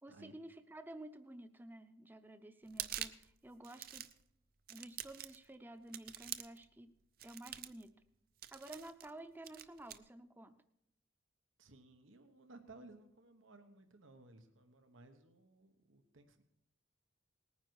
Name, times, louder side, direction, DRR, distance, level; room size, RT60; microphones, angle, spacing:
voice 1, 0.0-4.1 4.7-6.9 7.2-7.9 8.5-10.5, right 1 dB, 10° right, 10 dB, 0.6 m, -52 dB
sound 1, 2.7-3.3 3.6-4.2 4.7-5.5 5.9-6.6 7.2-7.8 8.4-9.1 9.4-10.0, right 12 dB, 50° right, 0.6 m, -45 dB
voice 2, 11.6-16.4, right 2 dB, 90° right, 7 dB, 1.2 m, -59 dB
19.0 x 9.7 x 4.7 m, 0.79 s
head